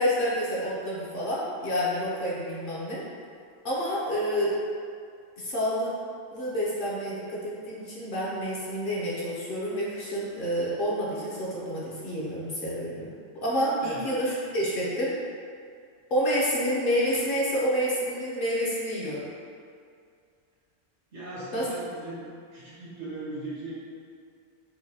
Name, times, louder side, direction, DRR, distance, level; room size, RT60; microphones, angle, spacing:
voice 1, 0.0-3.0 3.6-4.6 5.4-5.9 6.3-15.2 16.1-19.2 21.5-21.7, equal, 55° left, -6 dB, 0.8 m, -28 dB
voice 2, 21.1-22.2 22.5-23.8, right 2 dB, 90° right, -9 dB, 1.4 m, -38 dB
4.5 x 2.2 x 2.7 m, 2.3 s
omnidirectional pair, 1.1 m